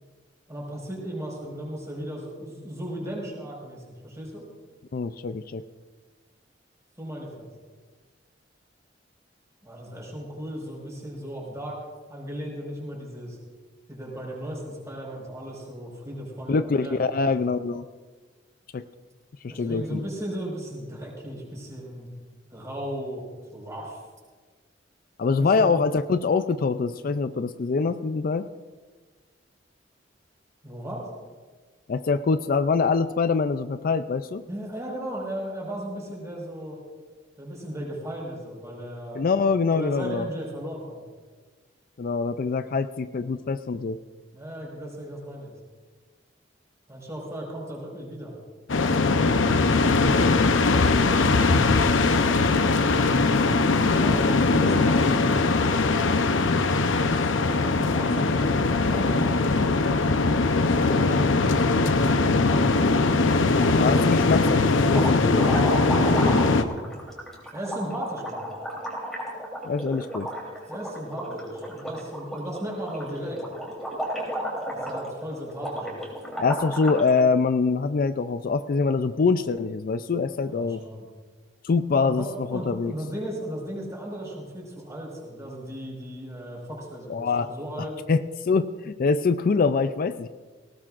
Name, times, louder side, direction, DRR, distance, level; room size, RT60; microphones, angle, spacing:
voice 1, 0.5-4.5 7.0-7.5 9.6-11.8 12.1-13.4 13.9-17.3 19.5-22.1 22.5-23.2 23.5-24.0 25.3-25.8 30.6-31.1 34.5-36.8 37.4-39.2 39.7-41.0 44.3-45.5 46.9-48.3 50.9-52.0 54.0-55.6 57.4-60.2 60.6-62.8 64.0-64.1 65.3-66.9 67.5-68.4 70.7-73.4 74.7-76.0 80.4-81.0 82.0-88.0, equal, 15° right, -3 dB, 5.0 m, -36 dB
voice 2, 4.9-5.6 16.5-17.9 18.7-18.8 19.4-20.0 25.2-28.5 31.9-34.4 39.1-40.3 42.0-44.0 49.9-50.4 63.8-65.5 69.6-70.3 76.4-80.8 81.6-82.9 87.1-87.5 87.8-90.3, left 4 dB, 50° left, 11 dB, 0.4 m, -24 dB
sound 1, 48.7-66.6, left 3 dB, 85° left, 0.7 m, -21 dB
sound 2, 63.4-64.0 64.3-77.1, equal, ahead, 3.4 m, -34 dB
19.0 x 18.0 x 2.5 m, 1.4 s
head